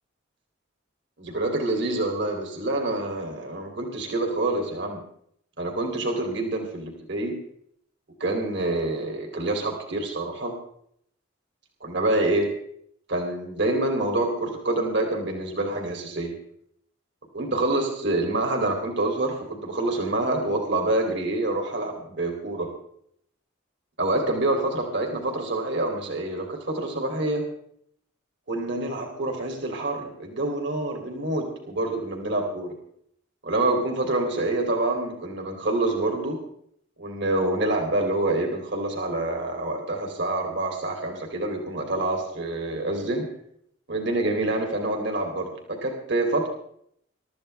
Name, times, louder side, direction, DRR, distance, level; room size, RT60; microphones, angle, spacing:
voice 1, 1.2-5.0 5.6-7.4 8.2-10.5 11.8-12.5 13.1-16.3 17.3-22.7 24.0-27.4 28.5-32.8 33.4-36.4 37.0-43.3 43.9-46.5, right 2 dB, 60° right, 2 dB, 2.8 m, -26 dB
23.0 x 13.0 x 3.3 m, 0.68 s
head